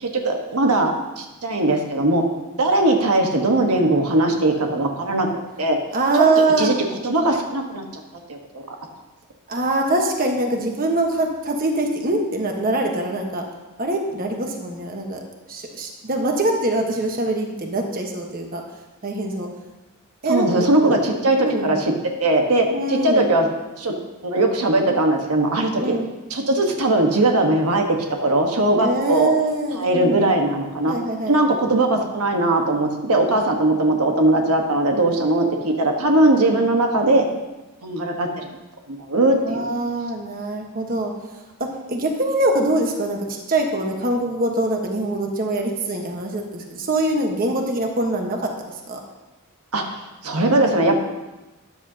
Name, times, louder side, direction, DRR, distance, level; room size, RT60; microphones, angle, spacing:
voice 1, 0.0-2.2 2.6-5.3 5.6-5.8 6.2-6.3 6.6-6.7 7.0-8.0 8.3-8.6 20.3-21.4 21.6-21.9 22.2-23.5 23.8-23.9 24.2-25.9 26.3-27.8 28.2-29.3 29.7-31.0 31.3-37.2 37.8-38.5 38.9-39.6 49.7-51.0, right 2 dB, 85° right, 2 dB, 1.3 m, -19 dB
voice 2, 5.9-6.7 9.5-13.4 13.8-15.2 15.5-18.6 19.0-19.5 20.2-20.7 21.4-21.7 22.7-23.3 25.8-26.1 28.8-30.2 30.9-31.4 39.4-41.1 41.6-48.5 48.9-49.0, right 2 dB, 40° right, 2 dB, 1.3 m, -23 dB
13.0 x 10.5 x 2.8 m, 1.1 s
head